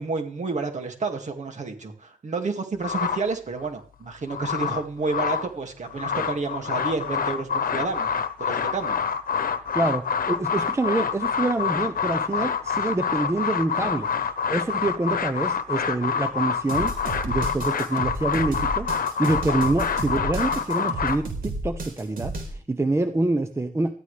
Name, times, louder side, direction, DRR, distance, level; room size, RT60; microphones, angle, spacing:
voice 1, 0.0-8.1 8.4-9.0 13.8-13.9, right 4 dB, 55° right, 4 dB, 2.3 m, -30 dB
sound 1, 2.8-3.7 4.1-5.5 5.8-21.2, left 6 dB, 85° left, 1.0 m, -27 dB
voice 2, 9.7-14.1 14.5-16.9 17.3-18.9 19.2-23.9, right 2 dB, 20° right, 8 dB, 0.7 m, -26 dB
sound 2, 16.7-22.5, right 2 dB, 90° right, 4.0 m, -32 dB
19.5 x 14.0 x 3.4 m, 0.43 s
wide cardioid pair, 180°, 14 cm